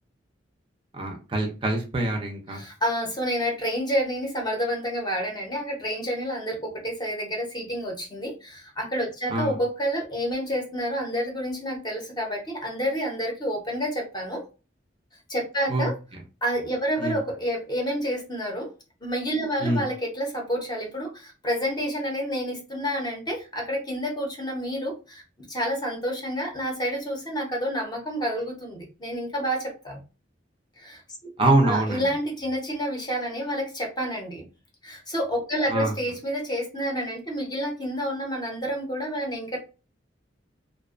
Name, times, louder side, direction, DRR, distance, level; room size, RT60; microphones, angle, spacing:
voice 1, 0.9-2.6 9.3-9.6 15.7-15.9 17.0-17.2 19.6-19.8 31.4-32.1 35.7-35.9, right 2 dB, 30° right, 2 dB, 0.4 m, -24 dB
voice 2, 2.5-14.4 15.3-16.0 16.4-18.7 19.0-25.2 25.5-30.0 30.8-31.0 31.6-34.5 34.8-39.6, equal, 20° left, 1 dB, 0.7 m, -29 dB
2.5 x 2.2 x 2.3 m, 0.32 s
head